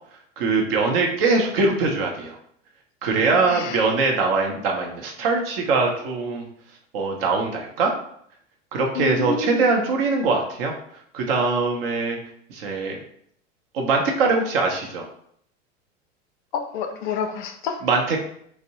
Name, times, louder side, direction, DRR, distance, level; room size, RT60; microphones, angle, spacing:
voice 1, 0.4-2.4 3.0-6.4 6.9-7.9 8.7-10.7 11.1-12.2 12.5-13.0 13.7-15.0 17.8-18.2, right 3 dB, 50° right, 1 dB, 0.7 m, -22 dB
voice 2, 3.3-3.8 9.0-9.7 16.5-17.8, left 6 dB, 40° left, 6 dB, 0.4 m, -28 dB
2.5 x 2.0 x 2.8 m, 0.66 s
figure-of-eight pair, 90°, 38 cm